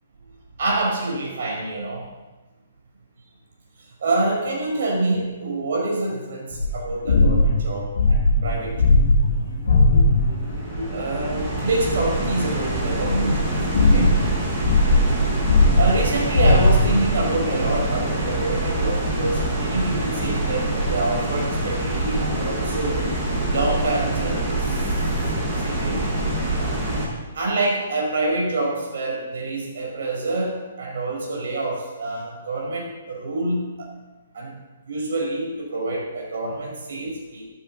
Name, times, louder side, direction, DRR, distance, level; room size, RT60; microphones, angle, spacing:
voice 1, 0.6-2.1 4.0-8.8 9.3-9.4 10.9-14.2 15.7-23.1 23.5-25.1 25.6-26.1 26.5-26.8 27.3-33.9 34.3-34.5 34.8-37.4, right 2 dB, 60° right, -1 dB, 5.3 m, -26 dB
sound 1, 6.5-10.5 11.1-11.2 13.0-17.2, left 2 dB, 60° left, 2.4 m, -18 dB
sound 2, 8.5-27.1, right 1 dB, 20° right, 5.1 m, -25 dB
11.5 x 8.8 x 7.1 m, 1.1 s
figure-of-eight pair, 125°, 0 cm